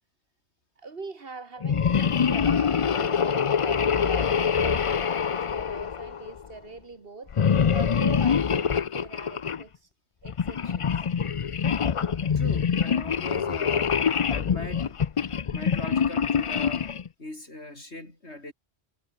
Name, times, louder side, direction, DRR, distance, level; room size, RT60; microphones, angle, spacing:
voice 1, 0.8-7.3 7.7-9.7 10.2-10.9, right 4 dB, 60° right, 2.1 m, -41 dB
sound 1, 1.6-6.5 7.3-9.6 10.3-17.1, left 7 dB, 40° left, 0.5 m, -25 dB
voice 2, 12.3-14.0 14.3-15.0 15.5-16.9 17.2-18.5, left 1 dB, 85° left, 6.5 m, -40 dB
omnidirectional pair, 1.1 m